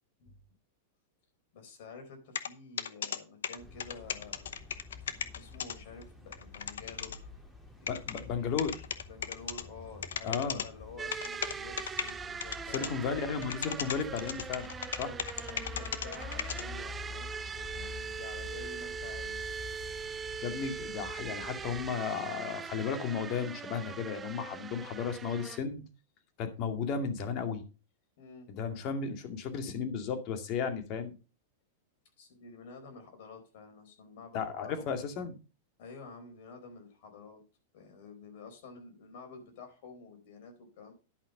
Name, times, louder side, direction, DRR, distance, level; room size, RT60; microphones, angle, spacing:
voice 1, 1.5-4.6 5.0-7.3 7.8-8.5 9.1-13.2 14.8-17.3 17.6-19.6 28.2-28.5 32.2-34.9 35.8-37.4 37.7-40.9, left 4 dB, 60° left, 5 dB, 4.4 m, -50 dB
sound 1, 2.3-2.5 2.8-3.2 3.4-5.7 6.0-6.1 6.3-7.2 7.9-8.2 8.6-9.6 10.0-10.7 11.1-12.1 12.4-12.9 13.2-16.6, left 8 dB, 85° left, 0.8 m, -35 dB
sound 2, 3.6-21.9, left 4 dB, 10° left, 2.3 m, -48 dB
voice 2, 7.9-8.8 10.2-10.6 12.7-14.7 15.0-15.1 20.4-25.8 26.4-27.6 28.5-31.1 34.3-35.4, left 6 dB, 45° left, 7 dB, 2.2 m, -34 dB
sound 3, 11.0-25.6, right 6 dB, 20° right, 0.4 m, -41 dB
11.0 x 5.9 x 5.3 m, 0.32 s
hypercardioid pair, 125°, 0 cm